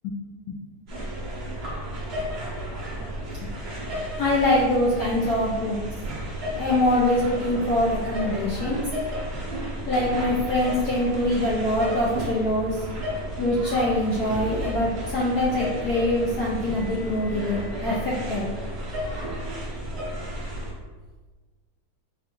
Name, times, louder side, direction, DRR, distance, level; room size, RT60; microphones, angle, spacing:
sound 1, 0.9-20.7, equal, 65° right, 0.6 m, -32 dB
voice 1, 4.2-5.8 6.5-8.8 9.9-12.9 13.4-18.5, left 1 dB, 85° left, -6 dB, 0.8 m, -24 dB
4.6 x 2.3 x 2.9 m, 1.3 s
omnidirectional pair, 2.4 m